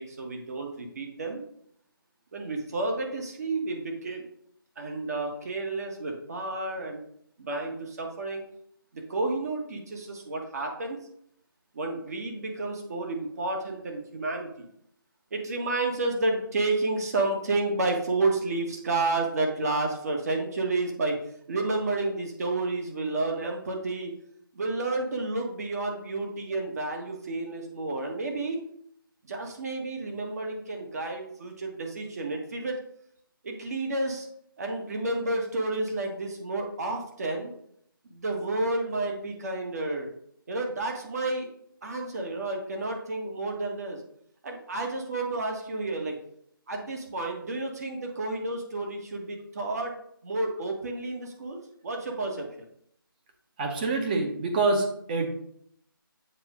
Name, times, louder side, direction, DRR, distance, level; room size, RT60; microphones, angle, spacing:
voice 1, 0.0-1.4 2.3-4.2 4.8-7.0 7.4-8.4 8.9-11.0 11.7-14.7 15.3-21.2 21.5-24.1 24.5-28.6 29.3-32.8 33.4-34.3 34.6-37.5 38.1-40.1 40.5-41.5 41.8-44.0 44.4-46.1 46.7-49.9 50.2-52.5, right 2 dB, 45° right, 2 dB, 1.5 m, -30 dB
voice 2, 53.6-55.3, right 3 dB, 25° right, 3 dB, 1.0 m, -26 dB
7.6 x 3.6 x 5.0 m, 0.68 s
figure-of-eight pair, 160°, 12 cm